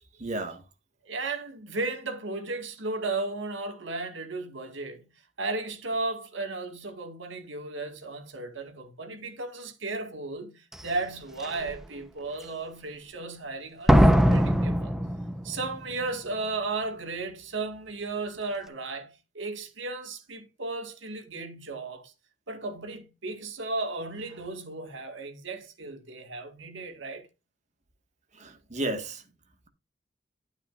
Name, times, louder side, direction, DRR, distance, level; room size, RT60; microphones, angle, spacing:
voice 1, 0.2-0.6 28.4-29.2, right 1 dB, 40° right, 1.9 m, -32 dB
voice 2, 1.0-5.1 5.4-14.9 15.4-22.1 22.5-27.3, right 3 dB, 90° right, 2.1 m, -35 dB
Slam, 10.7-10.8 11.4-11.8 13.9-15.8 16.0-16.1, equal, 5° right, 0.9 m, -21 dB
11.5 x 9.2 x 2.6 m
head